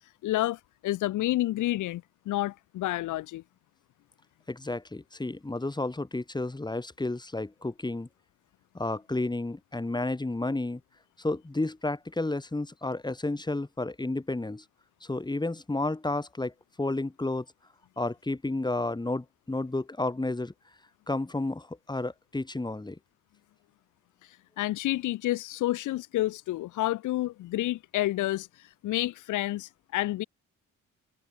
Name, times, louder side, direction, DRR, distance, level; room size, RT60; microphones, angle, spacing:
voice 1, 0.2-3.4 24.6-30.2, left 16 dB, 80° left, 1.1 m, -29 dB
voice 2, 4.5-8.1 8.7-10.8 11.2-14.6 15.0-17.4 18.0-20.5 21.1-23.0, left 2 dB, 15° left, 4.9 m, -31 dB
cardioid pair, 90°, 30 cm